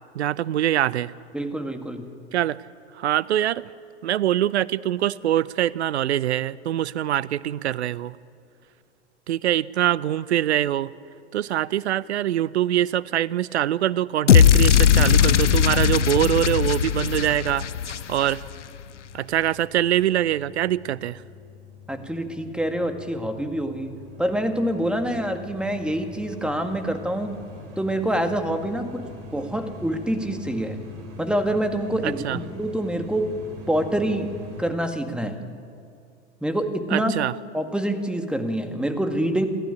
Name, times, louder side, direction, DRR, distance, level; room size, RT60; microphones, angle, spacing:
voice 1, 0.1-1.1 2.3-2.6 3.0-3.6 4.0-8.2 9.3-10.9 11.3-17.7 18.1-18.4 19.1-21.2 32.0-32.4 36.9-37.3, right 12 dB, 70° right, 21 dB, 0.7 m, -23 dB
voice 2, 1.3-2.1 21.9-27.4 27.8-29.1 29.3-30.8 31.2-33.3 33.7-35.4 36.4-37.1 37.5-39.5, right 1 dB, 5° right, 7 dB, 1.9 m, -26 dB
sound 1, 14.3-18.5, left 8 dB, 85° left, 0.6 m, -18 dB
sound 2, 17.9-34.7, left 2 dB, 40° right, 5.4 m, -42 dB
27.5 x 13.5 x 9.9 m, 2.4 s
figure-of-eight pair, 95°, 35 cm